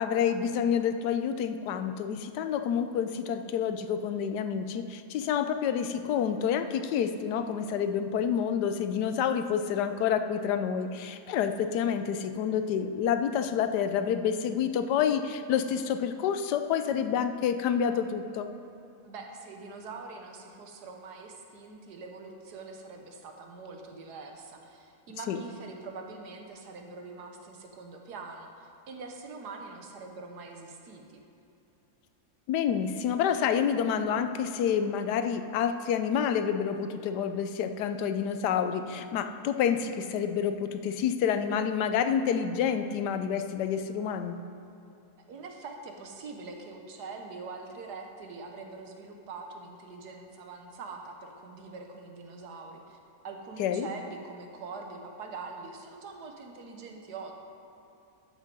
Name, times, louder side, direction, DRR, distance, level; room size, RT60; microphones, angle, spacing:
voice 1, 0.0-18.5 25.3-25.4 32.5-44.4 53.6-53.9, left 8 dB, 85° left, 9 dB, 1.2 m, -28 dB
voice 2, 19.0-31.2 45.3-53.0 53.2-57.3, right 4 dB, 75° right, 3 dB, 1.5 m, -44 dB
12.5 x 6.3 x 5.3 m, 2.8 s
omnidirectional pair, 1.7 m